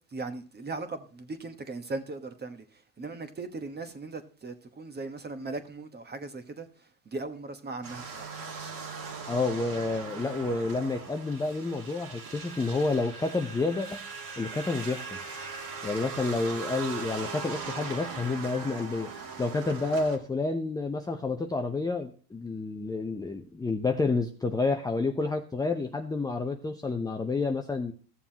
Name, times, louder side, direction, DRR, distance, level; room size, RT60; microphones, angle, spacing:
voice 1, 0.1-8.4, right 3 dB, 20° right, 1.2 m, -38 dB
sound 1, 7.8-20.2, right 5 dB, 40° right, 2.0 m, -40 dB
voice 2, 9.3-14.0 14.4-15.2 15.8-19.1 19.4-27.9, left 3 dB, 10° left, 0.6 m, -29 dB
15.0 x 7.0 x 2.8 m
hypercardioid pair, 85°, 48 cm